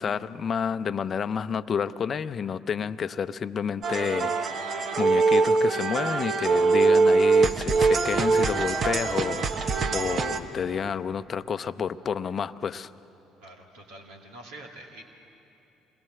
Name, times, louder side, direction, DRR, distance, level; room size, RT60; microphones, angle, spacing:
voice 1, 0.0-12.9, left 7 dB, 45° left, 14 dB, 0.7 m, -30 dB
sound 1, 3.8-10.4, right 4 dB, 45° right, 1.3 m, -23 dB
voice 2, 13.4-15.0, right 1 dB, 75° right, 0 dB, 2.4 m, -45 dB
27.5 x 20.5 x 7.7 m, 2.9 s
hypercardioid pair, 55°, 0 cm